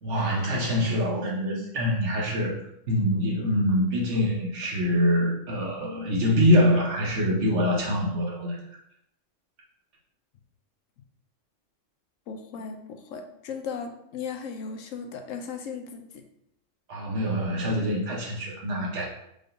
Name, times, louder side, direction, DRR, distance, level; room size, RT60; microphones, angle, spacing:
voice 1, 0.0-8.6 16.9-19.1, equal, 65° right, -3 dB, 1.4 m, -25 dB
voice 2, 12.3-16.0, left 6 dB, 80° left, 5 dB, 1.0 m, -36 dB
5.2 x 3.6 x 2.6 m, 0.75 s
omnidirectional pair, 1.3 m